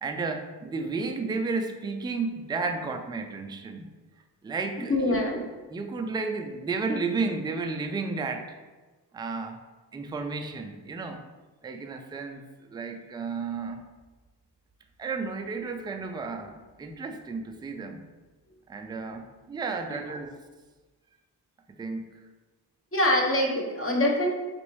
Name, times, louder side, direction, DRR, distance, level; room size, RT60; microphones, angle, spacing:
voice 1, 0.0-3.9 4.4-5.2 5.7-8.5 9.1-9.6 9.9-11.2 11.6-12.4 12.7-13.9 15.0-18.0 18.7-20.3 21.8-22.2, right 4 dB, 10° right, 5 dB, 0.3 m, -32 dB
voice 2, 4.9-5.4 22.9-24.3, left 1 dB, 30° left, 0 dB, 0.9 m, -24 dB
3.9 x 2.6 x 3.1 m, 1.2 s
supercardioid pair, 45°, 46 cm